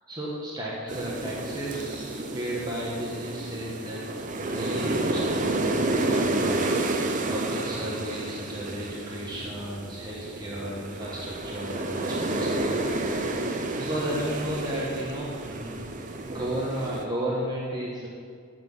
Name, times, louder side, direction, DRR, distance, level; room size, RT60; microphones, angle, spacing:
voice 1, 0.1-4.1 4.4-7.0 7.3-13.5 13.8-15.9 16.2-18.1, right 1 dB, 20° right, -6 dB, 1.4 m, -34 dB
sound 1, 0.9-17.0, right 2 dB, 35° right, 0.7 m, -30 dB
13.5 x 6.0 x 5.5 m, 2.1 s
head